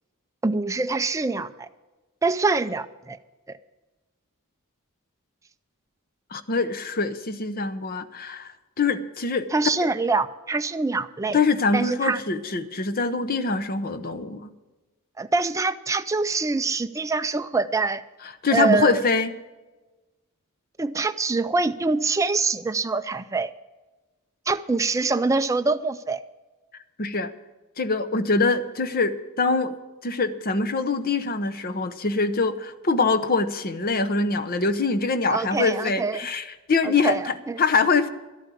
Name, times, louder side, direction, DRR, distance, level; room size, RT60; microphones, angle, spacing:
voice 1, 0.4-1.7 2.2-3.2 3.5-3.6 9.5-11.4 11.7-12.2 15.2-18.0 18.5-19.0 20.8-23.5 24.5-26.2 35.3-36.3 36.8-37.6, right 3 dB, 15° right, 9 dB, 0.4 m, -25 dB
voice 2, 6.3-8.5 8.8-9.5 11.3-14.5 18.4-19.3 27.0-27.3 27.8-29.8 30.0-37.2 37.6-38.1, left 4 dB, 40° left, 11 dB, 0.8 m, -24 dB
12.5 x 8.5 x 8.4 m, 1.2 s
head